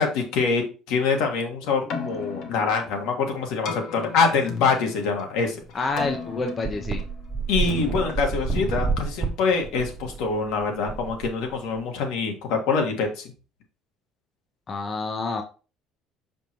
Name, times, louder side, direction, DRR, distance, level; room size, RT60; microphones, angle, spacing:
voice 1, 0.0-5.6 7.5-13.2, left 5 dB, 70° left, 3 dB, 1.6 m, -25 dB
Keyboard (musical), 1.7-9.9, left 5 dB, 50° left, 1.2 m, -37 dB
sound 1, 5.6-5.7 6.0-6.1 6.6-11.8, right 5 dB, 20° right, 0.6 m, -29 dB
voice 2, 5.7-7.0 14.7-15.4, left 3 dB, 20° left, 5 dB, 0.5 m, -28 dB
6.3 x 5.3 x 2.9 m, 0.34 s
cardioid pair, 170°, 0 cm